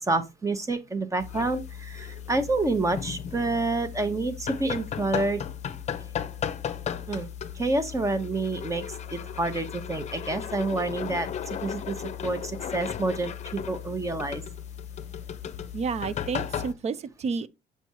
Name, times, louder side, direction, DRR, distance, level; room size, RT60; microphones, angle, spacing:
voice 1, 0.0-5.4 7.1-7.3 7.5-12.0 12.2-14.4, right 2 dB, 20° right, 1.0 m, -28 dB
sound 1, 1.2-16.7, left 8 dB, 40° left, 0.7 m, -35 dB
voice 2, 15.7-17.5, right 5 dB, 40° right, 0.6 m, -30 dB
7.0 x 5.8 x 3.0 m
cardioid pair, 110°, 17 cm